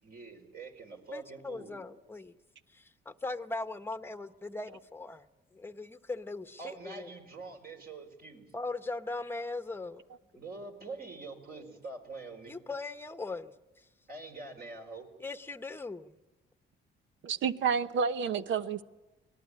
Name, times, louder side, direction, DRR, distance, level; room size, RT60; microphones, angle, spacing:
voice 1, 0.0-1.8 6.6-8.5 10.3-12.6 14.1-15.1, right 3 dB, 50° right, 3 dB, 4.4 m, -45 dB
voice 2, 1.1-2.4 2.7-5.2 5.5-7.1 8.5-10.0 11.5-11.7 12.5-13.8 15.2-16.2, left 3 dB, 10° left, 10 dB, 1.0 m, -39 dB
voice 3, 17.2-18.8, right 6 dB, 70° right, 12 dB, 0.9 m, -29 dB
24.5 x 18.5 x 9.8 m, 1.1 s
cardioid pair, 90°, 20 cm